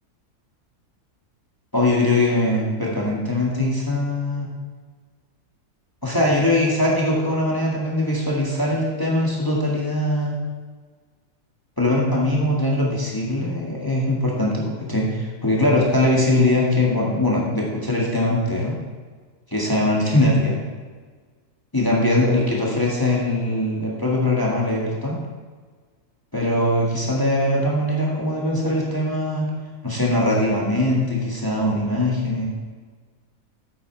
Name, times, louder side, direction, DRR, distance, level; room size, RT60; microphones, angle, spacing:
voice 1, 1.7-4.5 6.0-10.4 11.8-18.8 19.5-20.6 21.7-25.2 26.3-29.4 29.8-32.5, left 1 dB, 15° left, -3 dB, 1.7 m, -21 dB
8.8 x 8.4 x 4.4 m, 1.5 s
omnidirectional pair, 1.7 m